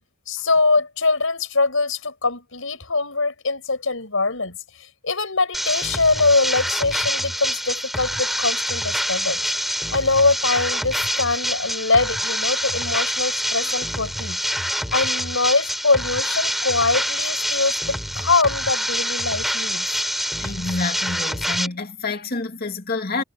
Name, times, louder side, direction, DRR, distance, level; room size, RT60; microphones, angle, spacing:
voice 1, 0.3-4.6 5.0-9.4 9.9-14.4 14.9-19.9, left 3 dB, 80° left, 5.2 m, -22 dB
sound 1, 5.5-21.7, equal, ahead, 5.8 m, -26 dB
voice 2, 20.4-23.2, left 3 dB, 50° left, 2.7 m, -28 dB
head